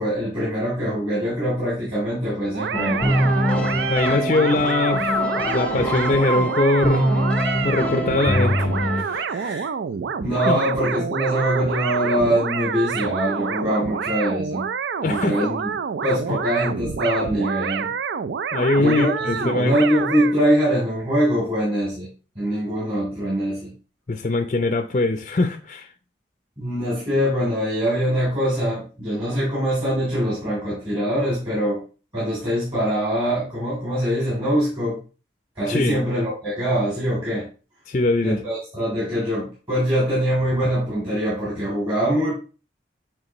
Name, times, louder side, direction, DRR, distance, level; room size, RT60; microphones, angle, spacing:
voice 1, 0.0-3.2 9.3-9.7 10.2-14.7 15.0-15.7 16.0-17.9 18.8-22.1 22.3-23.7 26.6-31.8 32.1-35.0 35.5-37.5 38.2-42.3, equal, 30° right, 3.1 m, -23 dB
sound 1, 2.5-20.3, right 6 dB, 80° right, 0.4 m, -28 dB
sound 2, 2.7-9.0, equal, 10° left, 0.7 m, -23 dB
voice 2, 3.9-5.1 5.4-7.1 7.6-8.7 9.0-9.3 10.4-10.6 15.0-15.5 18.5-19.8 24.1-25.9 35.7-36.0 37.9-38.4, left 2 dB, 40° left, 0.4 m, -22 dB
9.0 x 3.7 x 3.0 m
head